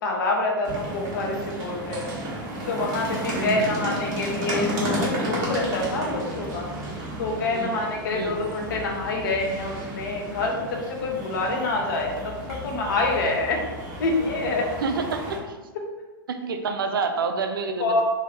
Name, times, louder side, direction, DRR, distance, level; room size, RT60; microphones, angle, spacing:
voice 1, 0.0-2.1 2.7-6.7 7.2-13.6 14.0-14.7 17.8-18.0, left 2 dB, 60° left, 0 dB, 0.9 m, -26 dB
sound 1, 0.6-15.4, right 1 dB, 55° right, 1.5 m, -33 dB
voice 2, 3.3-3.9 7.5-7.8 8.1-8.4 14.8-15.6 16.3-18.0, right 4 dB, 70° right, 7 dB, 0.4 m, -29 dB
3.6 x 2.6 x 3.3 m, 1.2 s
figure-of-eight pair, 100°, 12 cm